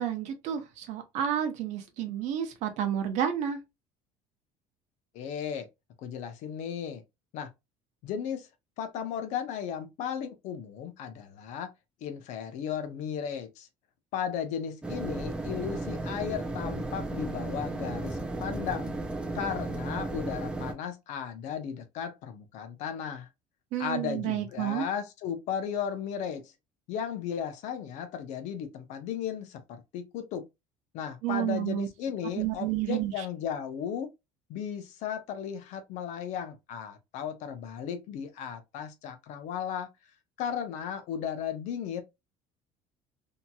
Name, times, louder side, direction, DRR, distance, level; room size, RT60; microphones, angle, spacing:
voice 1, 0.0-3.6 23.7-24.9 31.2-31.9 32.3-33.2, right 10 dB, 60° right, 0.8 m, -30 dB
voice 2, 5.1-5.7 6.0-7.0 7.3-7.5 8.0-8.5 8.8-11.7 12.0-13.7 14.1-18.9 19.3-23.3 23.8-26.5 26.9-30.4 30.9-34.1 34.5-39.9 40.4-42.0, left 8 dB, 65° left, 0.7 m, -35 dB
sound 1, 14.8-20.7, right 2 dB, 5° right, 0.4 m, -34 dB
2.9 x 2.7 x 2.2 m
cardioid pair, 150°, 13 cm